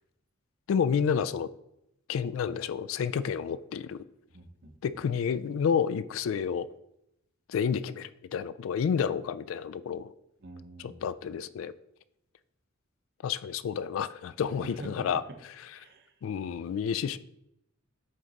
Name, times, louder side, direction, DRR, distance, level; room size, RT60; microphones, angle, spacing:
voice 1, 0.7-1.5 2.1-4.0 4.8-6.7 7.5-10.1 10.8-11.7 13.2-15.2 16.2-17.2, left 7 dB, 70° left, 0.3 m, -30 dB
voice 2, 4.3-5.0 10.4-11.1 14.5-15.4 15.7-16.1, right 2 dB, 55° right, 0.8 m, -46 dB
7.8 x 3.8 x 4.0 m
head